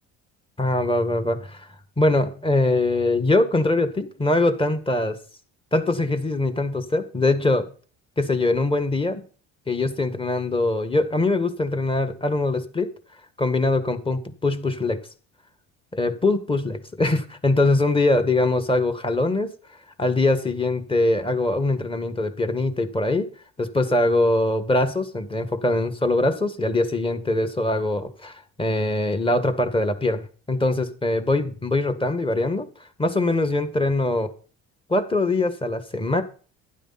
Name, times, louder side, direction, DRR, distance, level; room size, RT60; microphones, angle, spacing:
voice 1, 0.6-1.7 2.0-5.2 5.7-7.7 8.2-9.2 9.7-12.9 13.4-15.0 15.9-19.5 20.0-23.3 23.6-28.3 28.6-32.7 33.0-34.3 34.9-36.2, left 2 dB, 15° left, 9 dB, 1.9 m, -22 dB
12.0 x 10.0 x 4.3 m, 0.40 s
cardioid pair, 90°, 31 cm